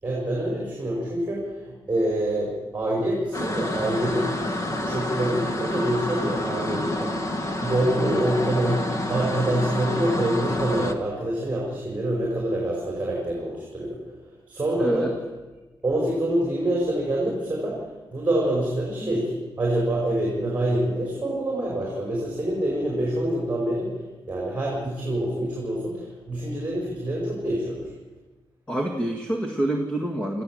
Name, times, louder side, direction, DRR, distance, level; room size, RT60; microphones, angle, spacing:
voice 1, 0.0-4.3 4.6-7.1 7.6-14.0 14.5-15.1 15.8-17.8 18.1-23.9 24.3-27.9, right 1 dB, 20° right, -3 dB, 5.4 m, -26 dB
sound 1, 3.3-10.9, left 1 dB, 40° left, 1.7 m, -28 dB
voice 2, 14.8-15.2 19.0-19.1 28.7-30.4, right 1 dB, 15° left, 3 dB, 1.8 m, -26 dB
27.0 x 15.0 x 7.7 m, 1.2 s
wide cardioid pair, 175°, 9 cm